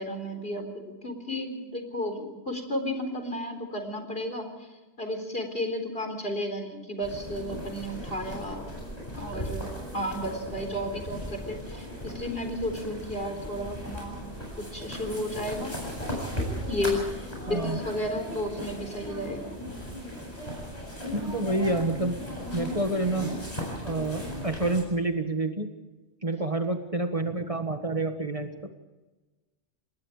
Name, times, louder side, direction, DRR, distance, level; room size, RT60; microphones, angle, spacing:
voice 1, 0.0-4.5 5.0-8.7 9.1-14.3 14.6-15.7 16.7-19.5, left 1 dB, 55° left, 4 dB, 4.1 m, -33 dB
sound 1, 7.0-24.8, equal, 35° left, 8.1 m, -37 dB
voice 2, 17.5-17.8 21.1-22.2 22.5-23.3 23.8-25.7 26.2-28.5, right 2 dB, 30° right, 6 dB, 1.6 m, -28 dB
27.5 x 20.5 x 5.0 m, 1.1 s
omnidirectional pair, 1.2 m